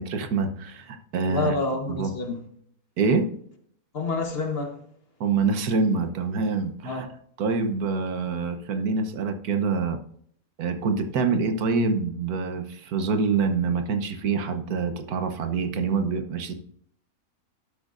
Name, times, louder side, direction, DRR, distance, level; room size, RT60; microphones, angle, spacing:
voice 1, 0.0-1.5 1.9-2.1 3.0-3.3 5.2-7.1 7.4-10.0 10.6-16.5, right 4 dB, 85° right, 1.5 m, -26 dB
voice 2, 1.3-2.4 3.9-4.8 6.8-7.1, left 3 dB, 45° left, 1.5 m, -28 dB
12.0 x 8.3 x 2.5 m
omnidirectional pair, 1.5 m